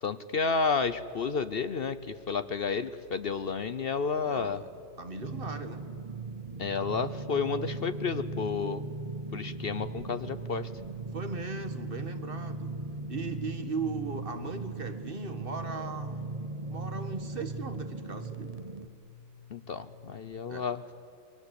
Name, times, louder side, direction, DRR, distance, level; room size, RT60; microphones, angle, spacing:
voice 1, 0.0-4.6 6.6-8.8 9.3-10.7 19.5-20.8, left 5 dB, 55° left, 12 dB, 1.0 m, -31 dB
sound 1, 0.8-20.4, left 7 dB, 15° right, 3.7 m, -55 dB
voice 2, 4.2-4.7 5.0-5.8 11.1-12.7 13.1-16.3 16.7-18.5 20.5-20.7, right 4 dB, 50° right, 8 dB, 2.1 m, -38 dB
sound 2, 5.2-18.9, right 3 dB, 35° right, 0.9 m, -38 dB
29.0 x 24.0 x 8.3 m, 2.6 s
omnidirectional pair, 1.2 m